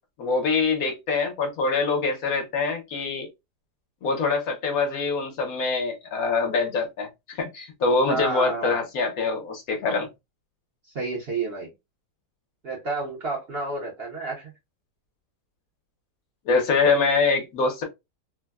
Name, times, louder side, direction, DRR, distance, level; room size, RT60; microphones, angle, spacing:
voice 1, 0.2-3.3 4.0-10.1 16.5-17.8, left 4 dB, 65° left, 1.2 m, -24 dB
voice 2, 8.1-8.8 10.9-11.7 12.6-14.5, right 3 dB, 50° right, 0.8 m, -30 dB
3.4 x 2.1 x 2.2 m
omnidirectional pair, 1.8 m